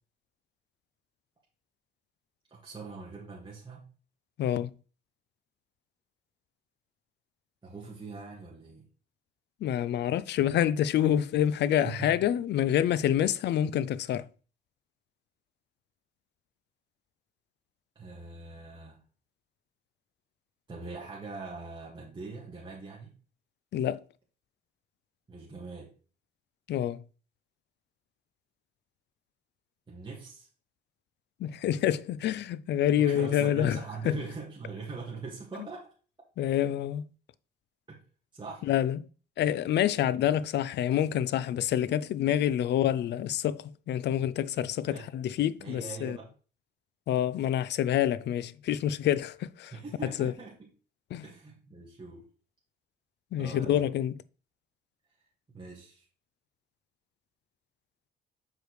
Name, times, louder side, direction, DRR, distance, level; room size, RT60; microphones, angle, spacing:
voice 1, 2.5-3.8 7.6-8.8 11.8-12.1 18.0-19.0 20.7-23.1 25.3-25.9 29.9-30.5 33.0-35.9 37.9-38.0 38.3-38.7 44.8-45.1 45.6-46.3 49.7-50.7 51.2-52.3 53.4-53.9 55.5-56.1, right 4 dB, 25° right, 1.8 m, -42 dB
voice 2, 4.4-4.7 9.6-14.3 23.7-24.0 26.7-27.0 31.4-33.8 34.0-34.2 36.4-37.1 38.7-39.0 39.4-46.2 47.1-49.7 50.2-50.3 51.1-51.2 53.3-54.1, left 11 dB, 60° left, 0.4 m, -27 dB
6.3 x 5.0 x 3.2 m
cardioid pair, 90°, 20 cm